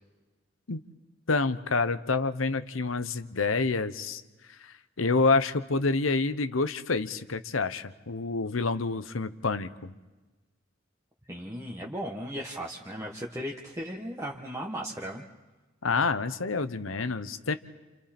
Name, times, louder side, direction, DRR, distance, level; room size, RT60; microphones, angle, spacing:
voice 1, 1.3-4.2 4.6-9.9 15.8-17.5, left 3 dB, 90° left, 12 dB, 1.0 m, -28 dB
voice 2, 11.3-15.2, equal, 15° right, -2 dB, 1.4 m, -36 dB
29.5 x 28.5 x 4.4 m, 1.2 s
head